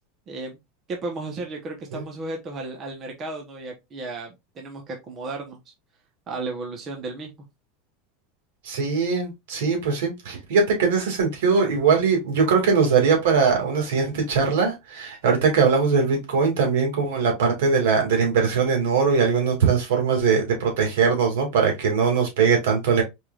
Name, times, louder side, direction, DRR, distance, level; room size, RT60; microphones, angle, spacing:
voice 1, 0.3-0.6 0.9-5.6 6.3-7.3, right 3 dB, 25° right, 1.0 m, -34 dB
voice 2, 8.6-23.0, right 5 dB, 85° right, 2.2 m, -21 dB
4.6 x 3.4 x 2.4 m
supercardioid pair, 155°, 0 cm